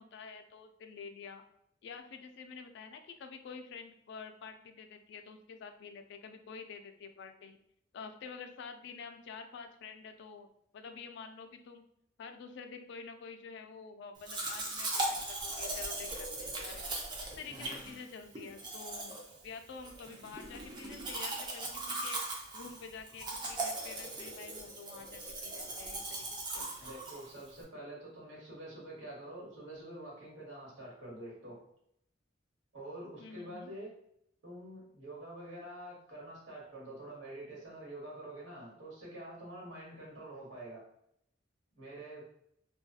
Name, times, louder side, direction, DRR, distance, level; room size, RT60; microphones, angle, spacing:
voice 1, 0.0-1.4 1.8-7.6 7.9-10.5 10.7-11.8 12.2-17.1 17.4-22.2 22.5-26.3 26.5-26.9 33.2-33.7, left 5 dB, 65° left, 7 dB, 0.3 m, -48 dB
Domestic sounds home sounds, 14.2-27.6, right 2 dB, 25° right, 0.5 m, -39 dB
voice 2, 17.5-17.8 26.8-31.6 32.7-33.9 34.4-40.8 41.7-42.2, right 1 dB, 80° right, -4 dB, 1.2 m, -47 dB
2.6 x 2.2 x 2.4 m, 0.73 s
head